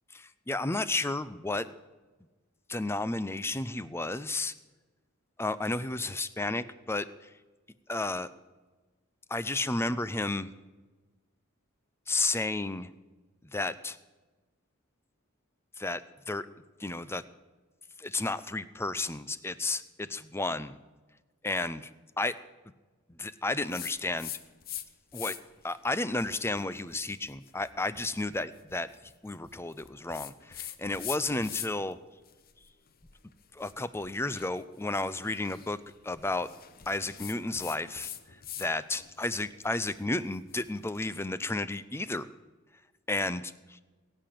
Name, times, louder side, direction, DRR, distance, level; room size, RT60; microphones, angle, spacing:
voice 1, 0.1-1.7 2.7-4.5 5.4-7.3 7.9-8.3 9.3-10.5 12.1-12.9 13.4-14.0 15.8-16.0 16.3-16.5 16.8-17.2 18.0-20.8 21.4-21.9 22.2-22.3 23.2-24.3 25.1-25.3 25.6-32.0 33.5-35.8 36.0-36.5 36.9-42.3 43.1-43.5, left 2 dB, 10° left, 15 dB, 0.5 m, -32 dB
sound 1, 23.7-24.9 25.1-25.6 26.1-31.9 32.3-38.7 39.0-41.2, left 11 dB, 45° left, 0.8 m, -44 dB
20.5 x 8.8 x 7.6 m, 1.3 s
head